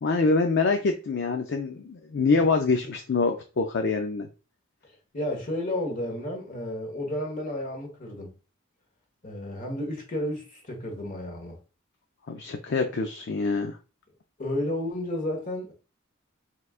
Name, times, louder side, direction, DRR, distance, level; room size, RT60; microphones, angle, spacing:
voice 1, 0.0-4.3 12.3-13.8, left 4 dB, 55° left, 0.4 m, -25 dB
voice 2, 5.1-8.3 9.2-11.6 14.4-15.7, left 1 dB, 40° left, 1.4 m, -32 dB
4.5 x 3.7 x 2.4 m
head